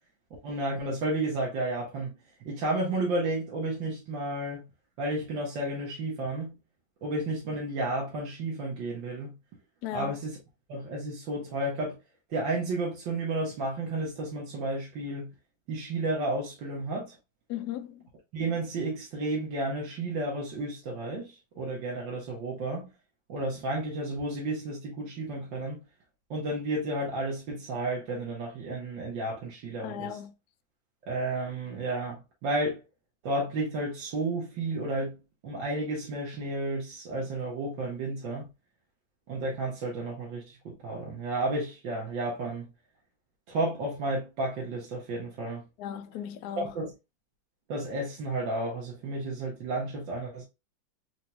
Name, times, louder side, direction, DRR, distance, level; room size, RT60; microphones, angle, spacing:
voice 1, 0.4-2.1 2.4-4.7 5.0-6.6 7.0-9.3 9.9-10.4 10.7-12.0 12.3-15.3 15.7-17.2 18.3-22.9 23.3-25.8 26.3-30.2 31.1-32.8 33.2-35.2 35.4-38.5 39.3-42.7 43.5-45.6 46.6-46.9 47.7-50.4, right 2 dB, 70° right, 2.0 m, -32 dB
voice 2, 9.8-10.2 17.5-18.0 29.8-30.3 45.8-46.8, left 10 dB, 70° left, 0.9 m, -36 dB
4.7 x 4.2 x 2.2 m
omnidirectional pair, 2.1 m